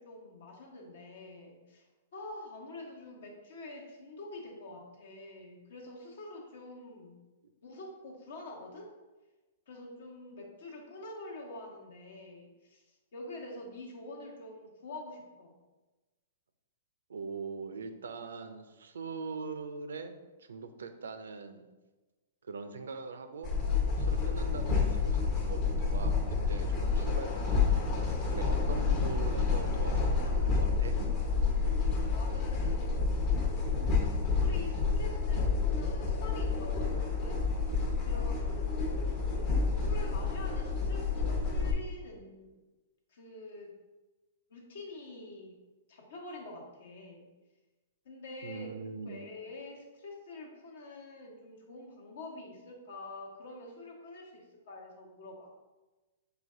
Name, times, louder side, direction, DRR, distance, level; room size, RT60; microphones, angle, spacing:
voice 1, 0.0-1.8 2.1-7.2 7.6-8.9 9.7-12.8 13.1-15.6 32.1-33.2 34.4-37.4 38.0-42.5 43.1-43.7 44.5-45.6 45.9-47.3 48.0-48.7 49.0-55.5, left 2 dB, 70° left, 0 dB, 1.0 m, -46 dB
voice 2, 17.1-20.1 20.4-21.6 22.5-23.5 24.0-27.8 28.3-31.0 48.4-49.2, right 4 dB, 90° right, 9 dB, 0.4 m, -42 dB
sound 1, 23.4-41.7, left 4 dB, 35° left, 0.7 m, -29 dB
4.9 x 2.3 x 3.6 m, 1.2 s
hypercardioid pair, 140°, 0 cm